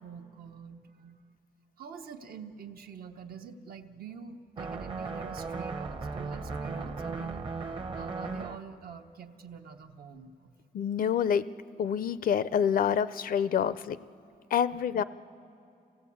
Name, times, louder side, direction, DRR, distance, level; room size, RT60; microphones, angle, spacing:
voice 1, 0.0-1.2 1.8-7.5 7.9-10.5 11.0-11.1 14.9-15.0, right 6 dB, 70° right, 4 dB, 1.1 m, -46 dB
sound 1, 4.6-8.6, right 4 dB, 30° right, 0.9 m, -36 dB
voice 2, 10.7-11.5 11.8-14.0 14.5-15.0, left 8 dB, 60° left, 15 dB, 0.5 m, -27 dB
27.0 x 17.0 x 8.5 m, 2.6 s
wide cardioid pair, 140°, 16 cm